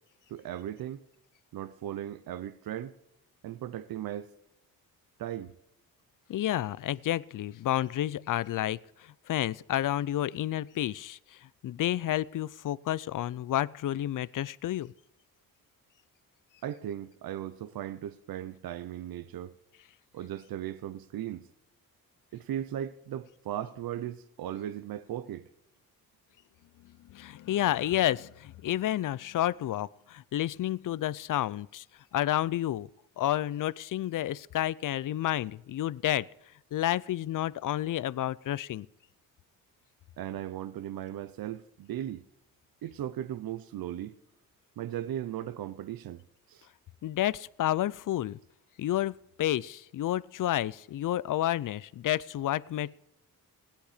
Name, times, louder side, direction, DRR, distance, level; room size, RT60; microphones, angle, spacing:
voice 1, 0.3-1.0 1.5-3.0 3.4-4.3 5.2-5.5 16.6-19.5 20.1-21.5 22.3-25.5 40.2-42.2 42.8-44.1 44.8-46.2 46.5-46.7, right 11 dB, 70° right, 0.7 m, -37 dB
voice 2, 6.3-14.9 27.1-31.8 32.1-32.9 33.2-36.3 36.7-38.9 47.0-48.4 48.8-52.9, left 13 dB, 60° left, 0.5 m, -30 dB
16.5 x 10.5 x 5.0 m
cardioid pair, 75°, 37 cm